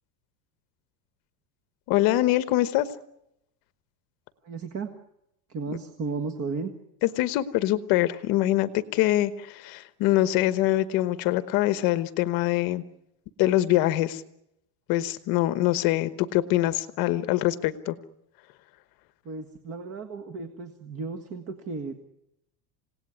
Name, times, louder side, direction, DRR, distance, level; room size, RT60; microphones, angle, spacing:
voice 1, 1.9-2.9 7.2-12.8 13.4-14.2 14.9-17.9, left 15 dB, 45° left, 13 dB, 1.2 m, -24 dB
voice 2, 4.4-4.9 5.5-6.7 19.2-21.9, right 4 dB, 30° right, 7 dB, 1.7 m, -34 dB
28.0 x 18.0 x 9.7 m, 0.83 s
cardioid pair, 165°, 48 cm